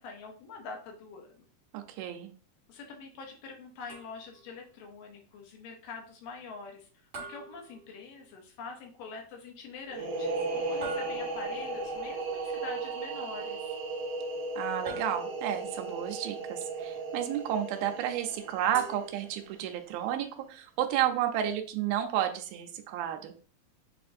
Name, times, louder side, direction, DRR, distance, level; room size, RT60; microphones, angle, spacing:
voice 1, 0.0-1.5 2.7-6.9 7.3-13.8, left 4 dB, 75° left, 2 dB, 2.3 m, -45 dB
voice 2, 1.7-2.3 14.6-23.3, right 11 dB, 85° right, 5 dB, 2.4 m, -31 dB
sound 1, 3.9-4.5 7.1-8.4 10.8-11.7 14.9-15.7 18.7-19.8, right 3 dB, 50° right, 1.5 m, -45 dB
sound 2, 9.9-19.4, right 3 dB, 65° right, 2.1 m, -36 dB
6.7 x 2.5 x 2.5 m, 0.42 s
omnidirectional pair, 4.2 m